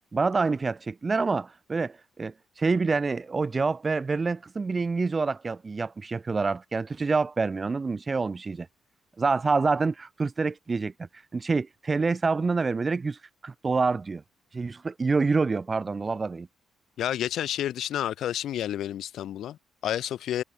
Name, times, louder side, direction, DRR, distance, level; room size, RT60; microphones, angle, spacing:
voice 1, 0.1-8.7 9.2-10.9 11.3-13.2 13.4-14.2 14.5-16.5, right 4 dB, 30° right, 2.3 m, -27 dB
voice 2, 17.0-20.4, left 11 dB, 75° left, 5.8 m, -30 dB
cardioid pair, 90°, 0 cm